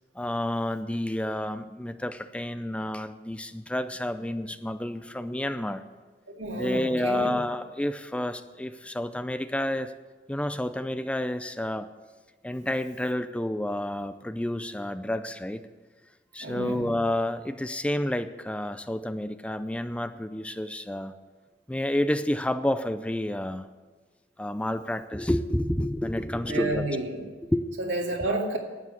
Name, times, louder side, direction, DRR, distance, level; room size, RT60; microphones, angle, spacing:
voice 1, 0.2-5.8 6.5-9.9 10.3-11.9 12.4-15.6 16.3-21.2 21.7-23.7 24.4-27.0 27.5-27.6, left 1 dB, 5° left, 11 dB, 0.5 m, -30 dB
voice 2, 6.3-7.3 16.4-16.9 26.5-27.2 27.8-28.6, right 2 dB, 90° right, 1 dB, 2.3 m, -30 dB
11.5 x 8.4 x 8.3 m, 1.3 s
head